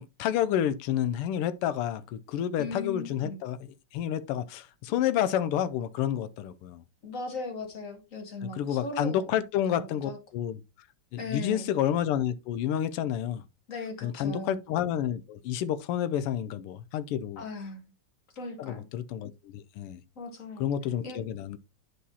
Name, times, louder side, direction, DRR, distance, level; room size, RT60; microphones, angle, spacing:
voice 1, 0.0-3.6 3.9-6.8 8.6-10.6 11.1-13.4 14.0-17.4 18.6-20.0 20.6-21.6, left 10 dB, 90° left, 1.6 m, -29 dB
voice 2, 2.6-3.4 7.0-9.3 9.7-10.2 11.2-11.7 13.7-14.6 17.4-17.8 18.3-18.8 20.2-20.6 21.0-21.2, left 3 dB, 45° left, 1.4 m, -38 dB
10.0 x 4.9 x 2.7 m
omnidirectional pair, 2.4 m